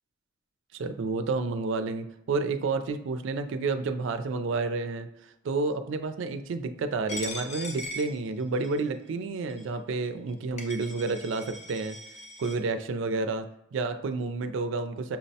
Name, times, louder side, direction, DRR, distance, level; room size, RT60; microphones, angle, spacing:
voice 1, 0.7-5.1 5.4-12.0 12.4-13.5 13.7-15.2, right 3 dB, 70° right, 8 dB, 0.3 m, -30 dB
Coin (dropping), 7.1-8.8 9.5-9.6 10.3-10.4 10.6-12.5, left 1 dB, 35° left, 0.5 m, -40 dB
5.7 x 2.1 x 2.7 m, 0.83 s
head